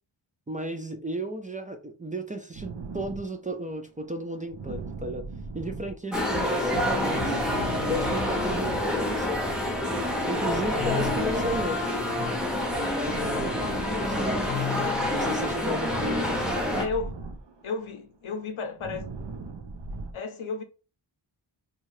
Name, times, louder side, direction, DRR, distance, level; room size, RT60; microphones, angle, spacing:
voice 1, 0.5-5.3 5.5-7.4 7.9-9.5 9.8-11.8 12.9-14.5 15.1-16.9, right 1 dB, 20° right, 0.3 m, -34 dB
sound 1, 2.5-15.2 15.4-20.1, right 4 dB, 60° right, 0.6 m, -40 dB
sound 2, 6.1-16.9, left 1 dB, ahead, 0.8 m, -27 dB
voice 2, 16.7-17.1 17.6-19.1 20.1-20.6, left 4 dB, 75° left, 0.7 m, -32 dB
2.7 x 2.3 x 3.1 m
wide cardioid pair, 70°, 48 cm